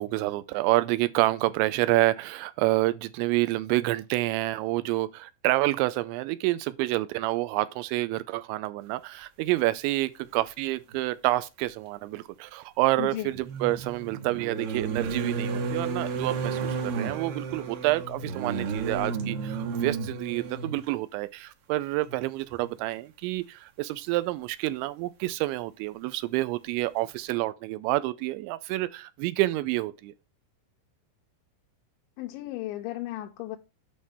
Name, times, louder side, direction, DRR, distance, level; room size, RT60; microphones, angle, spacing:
voice 1, 0.0-30.1, right 18 dB, 90° right, 2.9 m, -28 dB
sound 1, 10.9-11.0 13.2-20.9 22.1-22.2 22.5-22.7, right 5 dB, 70° right, 3.0 m, -32 dB
voice 2, 13.0-13.3 32.2-33.6, left 15 dB, 90° left, 3.0 m, -35 dB
8.7 x 5.5 x 3.5 m
omnidirectional pair, 5.2 m